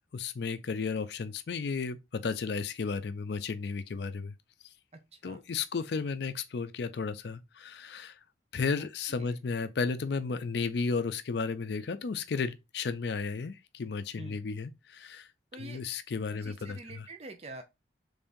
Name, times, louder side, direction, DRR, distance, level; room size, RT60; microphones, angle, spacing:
voice 1, 0.1-4.3 5.2-8.2 8.5-15.3 15.6-17.1, left 4 dB, 65° left, 0.4 m, -33 dB
voice 2, 4.9-5.4 8.8-9.4 14.2-14.4 15.5-15.8 16.3-17.6, right 2 dB, 35° right, 0.6 m, -46 dB
3.6 x 3.3 x 2.6 m
head